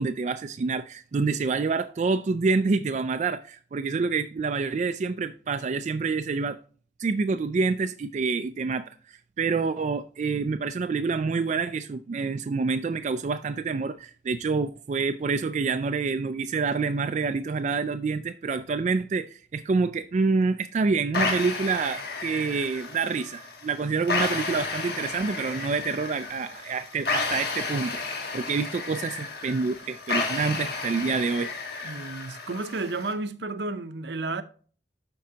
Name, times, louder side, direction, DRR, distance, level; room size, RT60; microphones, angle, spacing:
voice 1, 0.0-6.6 7.0-31.5, right 4 dB, 40° right, 0.3 m, -27 dB
sound 1, 21.1-33.1, left 3 dB, 60° left, 1.4 m, -32 dB
voice 2, 31.8-34.4, right 3 dB, 75° right, 0.7 m, -32 dB
12.5 x 4.5 x 2.8 m
head